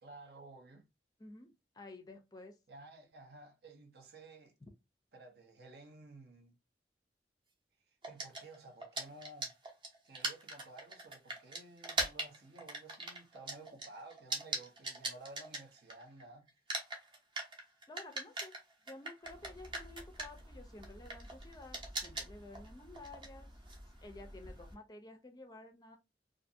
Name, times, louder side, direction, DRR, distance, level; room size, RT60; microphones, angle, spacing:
voice 1, 0.0-0.8 2.7-4.5 5.1-6.5 8.1-9.5 10.0-16.5, right 2 dB, 60° right, 0.7 m, -54 dB
voice 2, 1.2-2.6 17.9-18.5 18.8-23.5 24.0-26.0, left 2 dB, 20° left, 0.4 m, -52 dB
sound 1, 8.0-16.2 16.5-24.7, right 2 dB, 30° right, 0.7 m, -41 dB
2.5 x 2.5 x 2.5 m
head